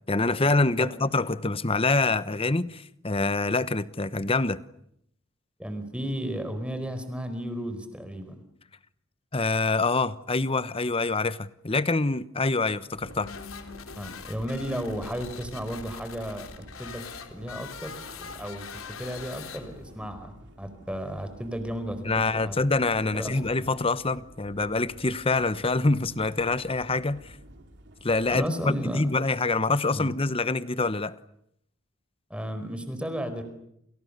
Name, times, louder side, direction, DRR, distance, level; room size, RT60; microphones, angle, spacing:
voice 1, 0.1-4.6 9.3-13.3 22.0-27.2 28.0-31.2, left 3 dB, 25° left, 1.0 m, -25 dB
voice 2, 5.6-8.4 14.0-17.0 17.3-18.7 19.0-20.3 20.6-22.0 22.4-22.6 23.1-23.7 28.3-29.1 29.9-30.1 32.3-33.4, equal, 5° right, 4.6 m, -34 dB
sound 1, 12.9-28.5, right 1 dB, 55° right, 3.9 m, -51 dB
sound 2, 13.0-20.0, left 5 dB, 90° left, 3.7 m, -42 dB
29.0 x 29.0 x 6.8 m
head